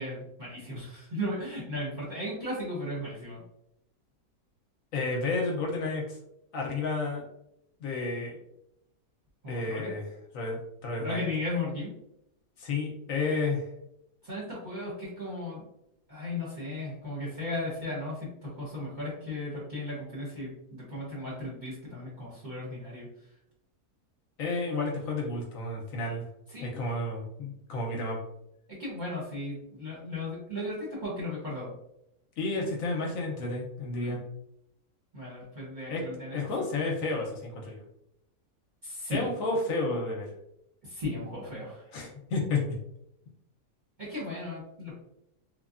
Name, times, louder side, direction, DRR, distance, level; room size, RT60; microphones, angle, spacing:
voice 1, 0.0-3.4 9.4-9.9 11.0-11.9 14.2-15.7 16.1-23.1 26.5-26.8 28.7-31.7 34.0-34.2 35.1-36.4 38.8-39.3 40.8-42.0 44.0-45.0, left 1 dB, 40° right, -7 dB, 0.8 m, -36 dB
voice 2, 4.9-6.2 6.5-7.2 7.8-8.4 9.5-10.0 10.3-11.2 12.6-13.7 24.4-26.2 26.6-28.2 32.4-34.2 35.9-36.0 36.3-37.8 39.1-40.3 41.9-42.6, left 3 dB, 70° left, -1 dB, 0.9 m, -31 dB
3.2 x 2.1 x 2.4 m, 0.81 s
omnidirectional pair, 1.6 m